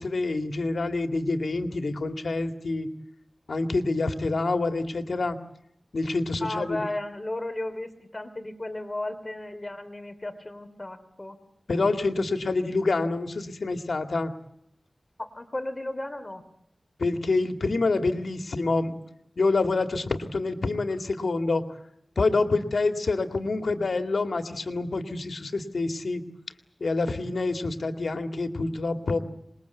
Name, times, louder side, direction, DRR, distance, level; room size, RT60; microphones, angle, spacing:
voice 1, 0.0-2.9 3.5-5.4 5.9-6.8 11.7-14.3 17.0-19.0 19.4-21.6 22.2-26.2 26.8-29.2, left 3 dB, 75° left, 7 dB, 2.3 m, -27 dB
voice 2, 6.4-11.4 15.2-16.4, left 1 dB, 25° left, 9 dB, 3.0 m, -34 dB
26.0 x 21.0 x 8.3 m, 0.76 s
wide cardioid pair, 90°, 0 cm